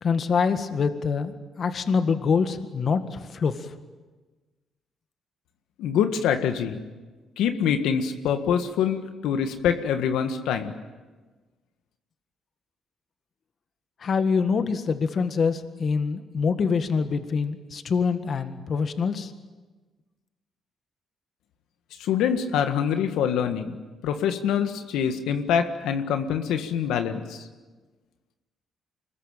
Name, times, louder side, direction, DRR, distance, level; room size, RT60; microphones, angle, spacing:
voice 1, 0.0-3.7 14.0-19.3, left 5 dB, 50° left, 9 dB, 1.7 m, -25 dB
voice 2, 5.8-6.8 7.4-10.7 22.0-23.8 24.0-27.4, left 8 dB, 90° left, 7 dB, 1.7 m, -25 dB
25.5 x 21.0 x 9.1 m, 1.3 s
cardioid pair, 90°, 0 cm